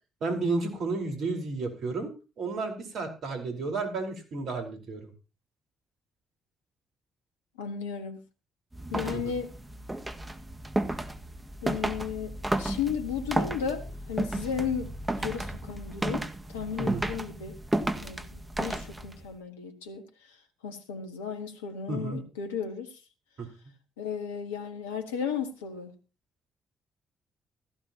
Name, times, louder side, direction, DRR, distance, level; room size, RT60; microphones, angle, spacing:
voice 1, 0.2-2.1 2.4-5.0 9.1-9.2 16.8-17.1 21.9-22.2 23.4-23.5, right 3 dB, 60° right, 4.5 m, -32 dB
voice 2, 7.6-8.2 8.9-9.5 11.6-14.9 15.2-17.5 18.0-20.4 20.6-23.0 24.0-25.9, left 7 dB, 85° left, 1.7 m, -34 dB
sound 1, 8.7-19.3, right 1 dB, 20° right, 1.9 m, -33 dB
16.5 x 14.5 x 3.0 m
hypercardioid pair, 45°, 0 cm